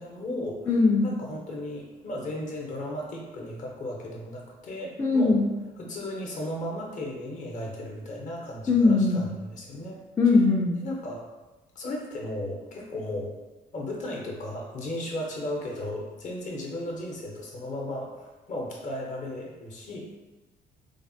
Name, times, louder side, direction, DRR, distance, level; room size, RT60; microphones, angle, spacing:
voice 1, 0.0-0.7 1.0-5.4 5.8-10.0 10.8-11.3 11.7-13.4 13.7-20.0, left 1 dB, 45° left, -1 dB, 0.7 m, -35 dB
voice 2, 0.7-1.1 5.0-5.5 8.7-9.2 10.2-10.7, left 3 dB, 15° left, -3 dB, 0.3 m, -20 dB
3.2 x 2.0 x 2.6 m, 1.1 s
cardioid pair, 110°, 17 cm